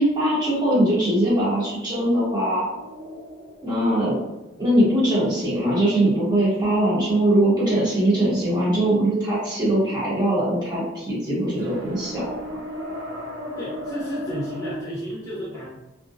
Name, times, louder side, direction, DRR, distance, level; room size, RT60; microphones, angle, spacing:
voice 1, 0.0-2.7 3.6-4.2 4.6-12.6, right 1 dB, 25° right, -7 dB, 0.8 m, -21 dB
sound 1, 2.7-5.1 11.6-14.7, equal, 75° right, 0.6 m, -35 dB
voice 2, 13.6-15.7, equal, 20° left, -8 dB, 0.8 m, -32 dB
2.3 x 2.0 x 2.6 m, 0.99 s
head